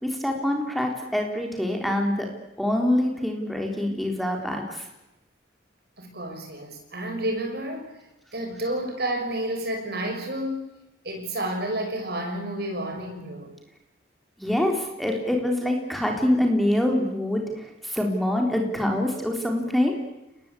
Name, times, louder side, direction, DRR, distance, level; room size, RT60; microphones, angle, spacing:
voice 1, 0.0-2.3 2.6-4.9 14.4-19.9, left 1 dB, ahead, 2 dB, 3.8 m, -25 dB
voice 2, 6.0-7.9 8.3-10.7 11.0-13.5, right 1 dB, 55° right, 4 dB, 6.2 m, -30 dB
30.0 x 20.5 x 8.6 m, 0.95 s
head